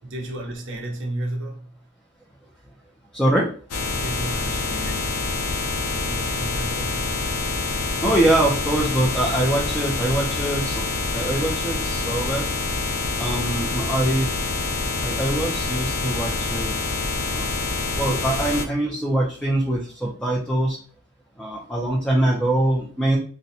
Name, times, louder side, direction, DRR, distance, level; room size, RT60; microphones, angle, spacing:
voice 1, 0.0-1.9 4.0-5.3 5.9-7.4, right 1 dB, 55° right, 0.8 m, -33 dB
voice 2, 3.1-3.5 8.0-10.8 11.1-12.5 13.2-14.3 15.0-16.7 17.3-17.5 18.0-20.8 21.4-23.2, right 1 dB, 5° left, 0.4 m, -23 dB
sound 1, 3.7-18.7, left 3 dB, 85° left, 0.6 m, -26 dB
4.0 x 2.2 x 2.7 m
head